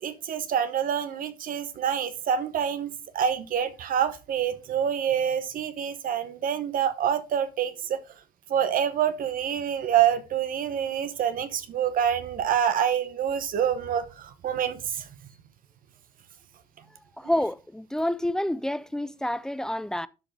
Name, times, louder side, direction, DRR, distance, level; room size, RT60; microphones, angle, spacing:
voice 1, 0.0-8.0 8.5-15.1, right 9 dB, 55° right, 0.9 m, -27 dB
voice 2, 17.2-20.1, left 1 dB, 5° left, 0.3 m, -28 dB
12.0 x 4.2 x 3.4 m
cardioid pair, 110°, 17 cm